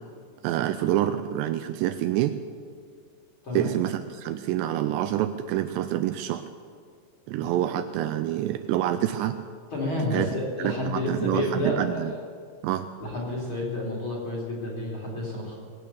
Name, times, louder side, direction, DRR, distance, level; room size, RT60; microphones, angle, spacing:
voice 1, 0.4-2.4 3.6-6.4 7.3-9.4 10.1-10.3 10.6-12.1 12.6-12.9, right 12 dB, 85° right, 10 dB, 2.6 m, -27 dB
voice 2, 9.7-12.0 13.0-15.6, left 1 dB, 30° left, -3 dB, 3.2 m, -30 dB
21.5 x 9.0 x 7.0 m, 2.1 s
omnidirectional pair, 5.3 m